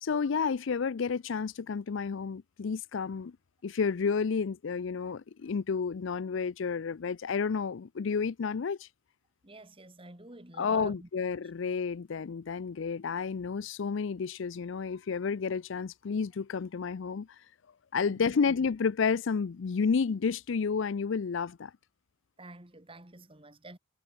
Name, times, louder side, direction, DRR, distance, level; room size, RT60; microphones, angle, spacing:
voice 1, 0.0-3.3 3.6-8.9 10.6-17.3 17.9-21.7, left 5 dB, 60° left, 0.4 m, -31 dB
voice 2, 9.4-11.1 17.9-18.3 22.4-23.8, right 2 dB, 25° right, 2.2 m, -48 dB
head